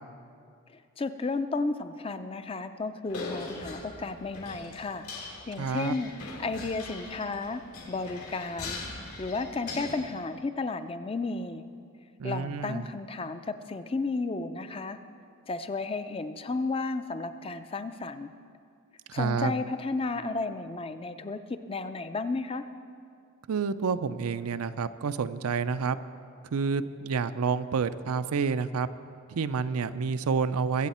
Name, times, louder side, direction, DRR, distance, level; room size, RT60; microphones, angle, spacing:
voice 1, 0.7-5.0 5.5-6.1 6.4-7.6 7.9-8.8 9.2-11.6 12.2-15.0 15.5-18.3 19.1-22.7, left 3 dB, 25° left, 10 dB, 0.4 m, -33 dB
sound 1, 3.1-10.0, left 3 dB, 75° left, 2.4 m, -41 dB
voice 2, 5.6-6.0 12.2-12.9 19.1-19.5 23.5-26.0 26.5-28.9 29.3-30.9, right 5 dB, 80° right, 13 dB, 0.4 m, -29 dB
22.0 x 8.1 x 4.3 m, 2.4 s
head